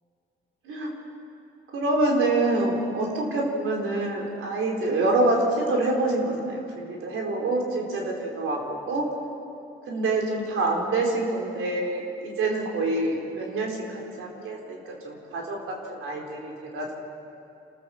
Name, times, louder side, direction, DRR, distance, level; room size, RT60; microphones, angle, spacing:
voice 1, 1.7-9.0 9.9-16.9, right 2 dB, 80° right, -1 dB, 4.4 m, -26 dB
28.0 x 14.0 x 7.3 m, 2.7 s
cardioid pair, 75°, 21 cm